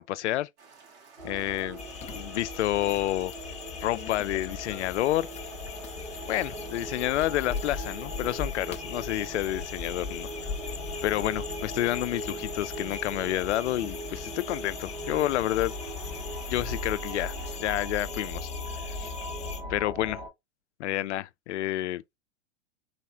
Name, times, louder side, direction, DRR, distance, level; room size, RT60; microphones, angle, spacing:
voice 1, 0.1-0.5 1.2-1.8 2.2-3.3 3.8-5.3 6.3-10.3 11.0-15.7 16.5-17.3 17.6-18.5 18.8-19.1 19.7-20.2 20.8-22.0, left 14 dB, 65° left, 0.5 m, -29 dB
sound 1, 0.6-17.6, right 5 dB, 65° right, 2.7 m, -54 dB
sound 2, 1.2-20.3, equal, 85° right, 2.4 m, -39 dB
sound 3, 1.8-19.6, left 6 dB, 20° left, 0.7 m, -40 dB
4.1 x 3.1 x 2.9 m
hypercardioid pair, 105°, 37 cm